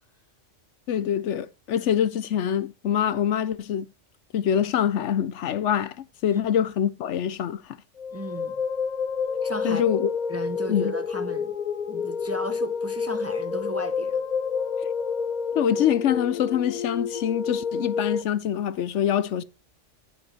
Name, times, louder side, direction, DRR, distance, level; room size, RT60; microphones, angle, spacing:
voice 1, 0.9-3.9 4.3-7.6 9.6-10.1 10.7-10.9 15.5-19.4, left 9 dB, 75° left, 1.0 m, -25 dB
sound 1, 8.0-18.2, left 6 dB, 45° left, 0.7 m, -29 dB
voice 2, 8.1-8.6 9.4-9.8 10.3-11.5 11.9-14.2, equal, 15° right, 0.6 m, -35 dB
15.0 x 5.3 x 4.2 m
omnidirectional pair, 1.2 m